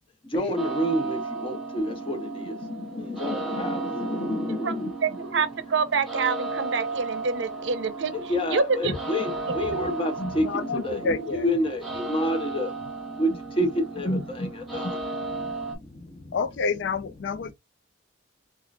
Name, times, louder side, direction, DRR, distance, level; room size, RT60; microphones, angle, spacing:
voice 1, 0.2-5.2 8.1-12.9 13.2-16.4 17.3-17.5, equal, 25° left, 0.8 m, -29 dB
sound 1, 0.6-15.8, right 3 dB, ahead, 1.3 m, -35 dB
voice 2, 5.0-8.1 8.5-8.9 9.4-9.6, right 5 dB, 60° right, 0.6 m, -26 dB
voice 3, 10.4-11.4 16.3-17.5, left 4 dB, 60° left, 0.3 m, -28 dB
3.7 x 2.4 x 2.3 m
head